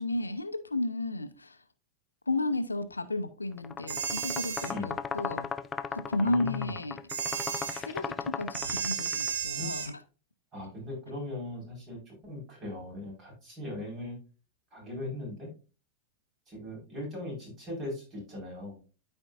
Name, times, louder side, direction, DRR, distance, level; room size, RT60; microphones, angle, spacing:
voice 1, 0.0-1.6 2.3-5.5 5.9-7.0 7.7-10.0, left 2 dB, 80° left, 0.6 m, -33 dB
sound 1, 3.6-9.3, left 6 dB, 20° left, 0.4 m, -37 dB
sound 2, 3.9-4.7 7.1-7.8 8.5-9.9, right 7 dB, 65° right, 1.0 m, -33 dB
voice 2, 6.2-6.7 9.5-9.8 10.5-14.2 14.7-15.5 16.5-18.8, left 2 dB, 25° right, 4.4 m, -39 dB
13.0 x 4.4 x 2.4 m
figure-of-eight pair, 90°, 0 cm